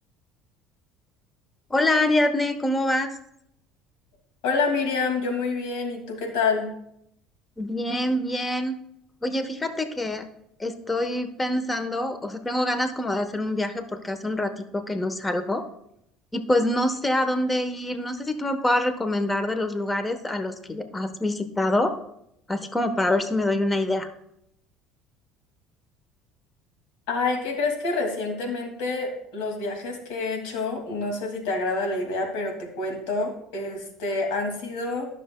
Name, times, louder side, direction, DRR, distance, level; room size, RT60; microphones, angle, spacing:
voice 1, 1.7-3.1 7.6-8.8 9.2-10.2 10.6-15.6 16.3-21.9 22.5-24.1, left 1 dB, 20° left, 9 dB, 1.1 m, -25 dB
voice 2, 4.4-6.7 27.1-35.1, left 3 dB, 70° left, 2 dB, 2.3 m, -27 dB
13.0 x 6.5 x 2.2 m, 0.76 s
hypercardioid pair, 70°, 0 cm